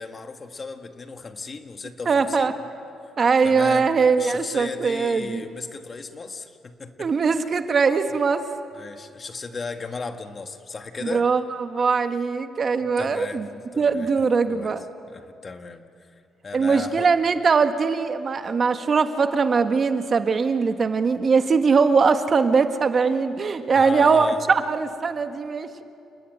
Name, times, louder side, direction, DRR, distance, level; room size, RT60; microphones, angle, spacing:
voice 1, 0.0-2.5 3.0-3.1 3.4-3.9 4.2-7.1 8.7-11.3 13.0-13.4 13.7-14.1 14.5-14.7 15.1-17.1 23.7-24.4, left 4 dB, 35° left, 6 dB, 1.8 m, -35 dB
voice 2, 2.0-2.5 3.2-5.4 7.0-8.4 11.0-13.5 13.8-14.8 16.5-25.8, right 5 dB, 40° right, 8 dB, 1.5 m, -21 dB
29.5 x 20.0 x 9.3 m, 2.6 s
cardioid pair, 90°, 0 cm